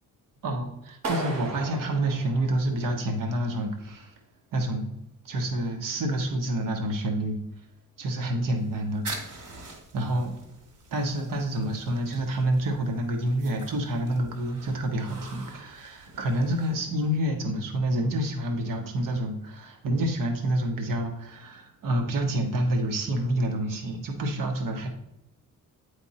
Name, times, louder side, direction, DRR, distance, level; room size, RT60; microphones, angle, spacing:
voice 1, 0.4-4.1 4.5-4.9 5.2-7.4 8.0-9.0 9.9-10.3 10.9-24.9, right 1 dB, 70° right, 4 dB, 1.1 m, -28 dB
Clapping, 1.0-3.1, right 2 dB, 50° right, 1.0 m, -35 dB
sound 1, 8.6-17.2, right 3 dB, 90° right, 2.2 m, -45 dB
9.2 x 3.5 x 4.2 m, 0.82 s
wide cardioid pair, 165°, 34 cm